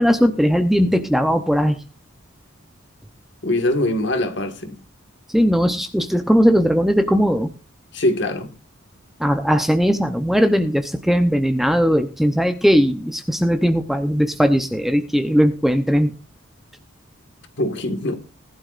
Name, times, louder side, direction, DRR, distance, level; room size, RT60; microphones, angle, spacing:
voice 1, 0.0-1.8 5.3-7.5 9.2-16.1, equal, ahead, 0.7 m, -18 dB
voice 2, 3.4-4.8 7.9-8.5 17.6-18.2, left 1 dB, 55° left, 1.7 m, -22 dB
19.5 x 11.5 x 2.5 m
head